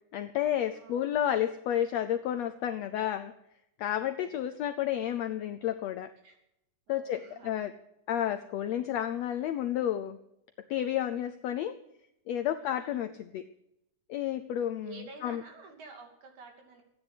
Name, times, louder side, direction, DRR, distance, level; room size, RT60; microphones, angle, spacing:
voice 1, 0.1-3.3 3.8-6.1 6.9-7.7 8.1-10.2 10.7-11.8 12.3-13.5 14.1-14.9 15.2-15.4, left 11 dB, 80° left, 9 dB, 1.5 m, -31 dB
voice 2, 0.6-1.1 3.9-4.5 6.2-6.4 6.9-7.7 8.7-9.1 12.6-13.0 14.8-16.8, right 4 dB, 65° right, 3 dB, 4.1 m, -51 dB
14.5 x 9.7 x 9.6 m, 0.81 s
omnidirectional pair, 3.7 m